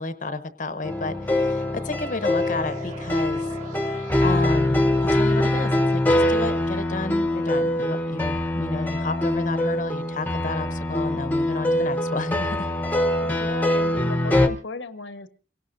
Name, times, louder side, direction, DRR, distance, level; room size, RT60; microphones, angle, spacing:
voice 1, 0.0-3.5 4.2-12.7, left 2 dB, 45° left, 11 dB, 0.8 m, -31 dB
sound 1, 0.8-14.5, left 1 dB, 10° left, 0.9 m, -23 dB
sound 2, 0.8-5.8, right 3 dB, 45° right, 3.5 m, -45 dB
voice 2, 13.2-15.3, left 3 dB, 90° left, 9 dB, 1.2 m, -36 dB
29.0 x 17.5 x 2.6 m, 0.40 s
head